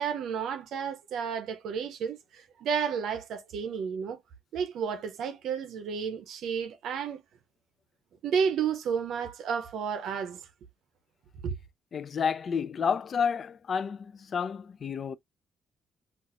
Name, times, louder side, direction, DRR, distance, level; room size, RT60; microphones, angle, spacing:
voice 1, 0.0-4.2 4.5-7.2 8.2-10.4 11.4-11.5, right 7 dB, 75° right, 0.6 m, -31 dB
voice 2, 11.9-15.2, left 6 dB, 50° left, 0.4 m, -30 dB
4.0 x 2.4 x 2.4 m
cardioid pair, 90°, 0 cm